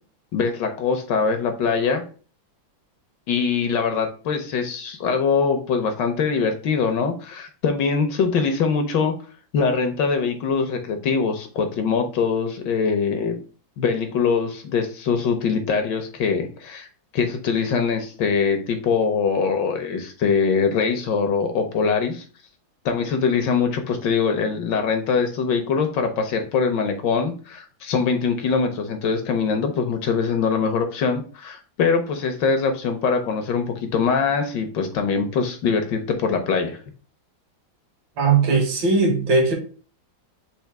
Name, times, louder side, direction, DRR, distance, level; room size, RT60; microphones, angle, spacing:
voice 1, 0.3-2.0 3.3-9.1 9.5-13.4 13.8-16.9 17.1-22.2 22.8-36.8, left 5 dB, 70° left, 6 dB, 1.2 m, -23 dB
voice 2, 38.2-39.5, right 4 dB, 65° right, 2 dB, 1.8 m, -19 dB
4.4 x 2.6 x 4.6 m, 0.38 s
omnidirectional pair, 2.2 m